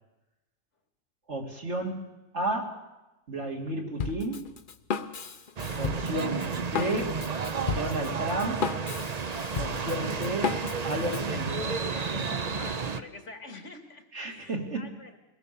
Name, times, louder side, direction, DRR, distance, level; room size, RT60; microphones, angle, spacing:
voice 1, 1.3-2.8 3.3-4.5 5.8-7.2 7.7-8.7 9.6-12.6 14.1-15.0, right 1 dB, 70° right, 0 dB, 3.2 m, -33 dB
Drum kit, 4.0-11.3, left 5 dB, 50° left, 1.0 m, -34 dB
sound 1, 5.6-13.0, right 5 dB, 40° right, 0.8 m, -32 dB
voice 2, 12.5-15.2, left 3 dB, 80° left, 4 dB, 2.7 m, -46 dB
23.0 x 18.0 x 6.9 m, 1.0 s
omnidirectional pair, 1.2 m